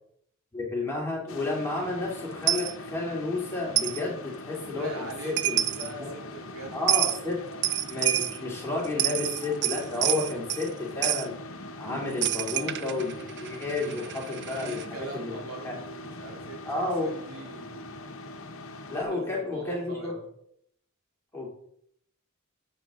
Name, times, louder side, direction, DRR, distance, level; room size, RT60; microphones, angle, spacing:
voice 1, 0.5-5.6 6.0-6.1 6.7-7.4 7.9-11.3 11.8-13.1 13.4-14.8 15.1-15.4 15.6-15.8 16.6-17.1 18.9-20.1 21.3-21.5, left 2 dB, 10° left, -3 dB, 2.7 m, -31 dB
sound 1, 1.3-19.0, left 2 dB, 70° left, 0.9 m, -42 dB
Coin (dropping), 2.5-2.7 3.8-4.0 5.1-5.2 5.4-5.9 6.9-7.2 7.6-8.4 8.8-10.7 11.0-11.3 12.2-14.9, right 13 dB, 55° right, 0.5 m, -28 dB
voice 2, 4.7-7.4 12.2-12.7 14.5-17.8 19.1-20.3, right 2 dB, 80° right, -2 dB, 3.3 m, -42 dB
10.5 x 7.6 x 3.7 m, 0.69 s
head